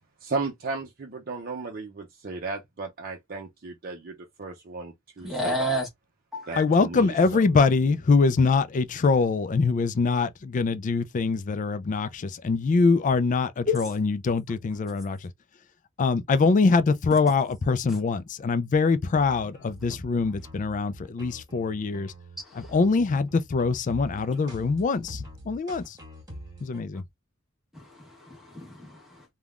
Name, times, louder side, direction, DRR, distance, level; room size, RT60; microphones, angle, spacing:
voice 1, 0.2-5.7 6.5-7.6, right 3 dB, 45° right, 0.6 m, -35 dB
voice 2, 5.2-5.9 6.3-6.6 13.7-13.9 19.9-20.0 22.4-22.7 27.7-29.2, left 1 dB, ahead, 1.1 m, -31 dB
voice 3, 6.6-15.2 16.0-22.1 22.5-26.0 26.6-27.0, left 4 dB, 40° left, 0.3 m, -23 dB
sound 1, 19.1-26.8, equal, 20° right, 1.4 m, -45 dB
3.4 x 2.2 x 2.4 m
head